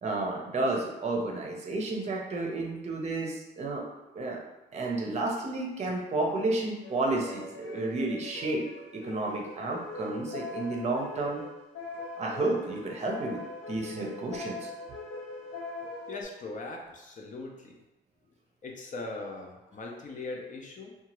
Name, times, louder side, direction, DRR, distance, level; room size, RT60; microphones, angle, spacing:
voice 1, 0.0-3.8 4.1-4.4 4.7-8.7 8.9-11.4 12.2-14.7, right 2 dB, 35° right, 0 dB, 0.6 m, -31 dB
sound 1, 6.8-16.2, left 3 dB, 90° left, 0.9 m, -41 dB
voice 2, 16.1-17.8 18.6-21.0, left 3 dB, 40° left, 1 dB, 0.6 m, -40 dB
2.8 x 2.3 x 2.9 m, 0.99 s
cardioid pair, 90°, 20 cm